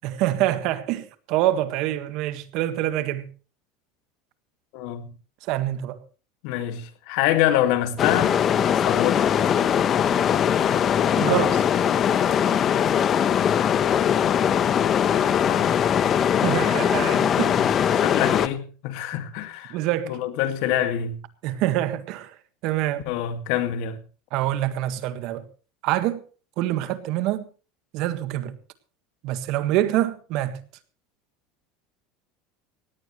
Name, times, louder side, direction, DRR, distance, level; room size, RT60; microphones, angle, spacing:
voice 1, 0.0-3.3 5.4-6.0 11.1-11.6 16.4-17.6 19.7-20.2 21.4-22.3 22.6-23.0 24.3-25.4 25.8-26.2 26.6-27.4 27.9-28.6 29.2-30.6, right 14 dB, 65° right, 1.6 m, -25 dB
voice 2, 4.7-5.1 6.4-8.4 8.9-9.3 15.4-15.7 17.4-17.6 17.9-19.8 20.1-21.2 23.1-24.0, left 12 dB, 70° left, 2.0 m, -25 dB
sound 1, 8.0-18.5, left 9 dB, 40° left, 1.0 m, -21 dB
17.5 x 17.0 x 3.2 m
supercardioid pair, 110°, 0 cm